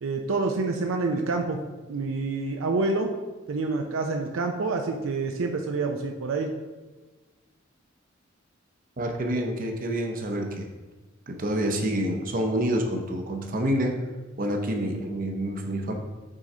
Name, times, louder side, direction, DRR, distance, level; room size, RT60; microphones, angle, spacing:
voice 1, 0.0-1.6 1.9-3.1 3.5-6.5, right 3 dB, 75° right, 3 dB, 0.5 m, -27 dB
voice 2, 9.0-10.7 11.3-14.0 14.4-15.9, right 1 dB, 45° right, 3 dB, 0.7 m, -27 dB
6.3 x 3.8 x 4.2 m, 1.2 s
head